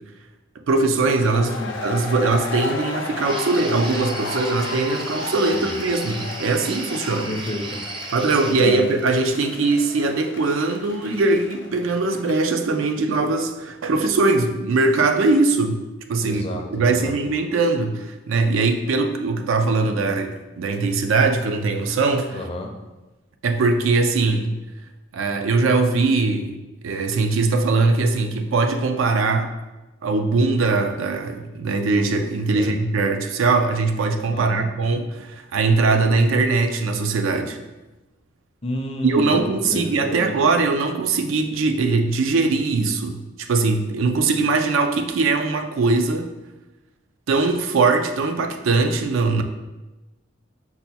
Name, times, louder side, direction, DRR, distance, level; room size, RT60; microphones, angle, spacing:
voice 1, 0.7-7.3 8.1-15.8 16.1-16.4 16.7-22.4 23.4-24.6 25.1-26.6 26.8-29.5 30.0-37.6 39.0-46.3 47.3-49.4, right 3 dB, 90° right, 6 dB, 0.4 m, -21 dB
sound 1, 1.0-12.7, left 3 dB, 70° left, 0.6 m, -34 dB
sound 2, 3.2-8.5, right 3 dB, 25° right, 0.3 m, -35 dB
voice 2, 7.3-7.8 8.6-8.8 16.2-17.3 22.3-22.7 32.5-32.7 34.3-34.7 38.6-40.4, left 1 dB, 30° left, 3 dB, 0.5 m, -30 dB
5.6 x 2.2 x 4.1 m, 1.1 s
head